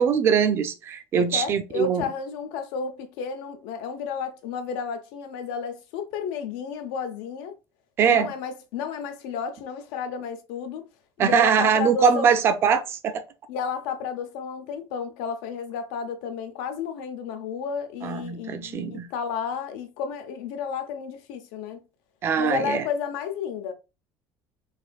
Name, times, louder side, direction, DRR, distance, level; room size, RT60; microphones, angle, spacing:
voice 1, 0.0-2.0 8.0-8.3 11.2-13.2 18.0-19.1 22.2-22.8, right 7 dB, 30° right, 0.4 m, -22 dB
voice 2, 1.1-7.5 8.1-10.9 11.2-12.3 13.5-21.8 22.4-23.7, left 6 dB, 80° left, 0.7 m, -32 dB
4.1 x 2.6 x 2.3 m
cardioid pair, 175°, 8 cm